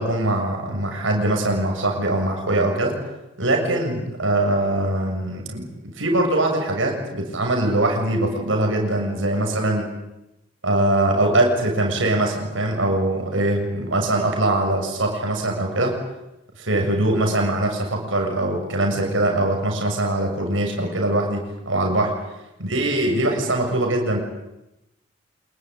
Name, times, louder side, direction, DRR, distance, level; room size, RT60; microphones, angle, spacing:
voice 1, 0.0-2.9 3.4-5.7 6.0-9.9 10.6-16.0 16.6-22.1 22.6-24.2, right 1 dB, 80° right, 2 dB, 7.0 m, -22 dB
27.0 x 22.0 x 9.4 m, 0.91 s
head